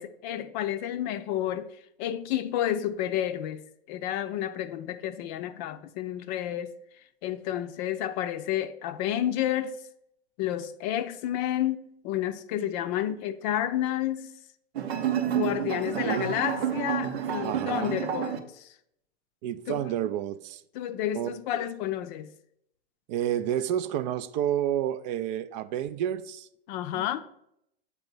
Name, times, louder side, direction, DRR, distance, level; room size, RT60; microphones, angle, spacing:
voice 1, 0.0-1.7 2.0-6.7 7.2-9.8 10.4-14.3 15.3-18.7 19.7-19.9 20.7-22.3 26.7-27.2, left 11 dB, 45° left, 0.5 m, -30 dB
sound 1, 14.7-18.4, right 9 dB, 85° right, 0.7 m, -29 dB
voice 2, 15.9-16.3 17.4-18.0 19.4-20.6 21.1-21.6 23.1-26.5 26.9-27.0, right 10 dB, 50° right, 0.4 m, -30 dB
8.0 x 3.0 x 5.3 m
hypercardioid pair, 105°, 30 cm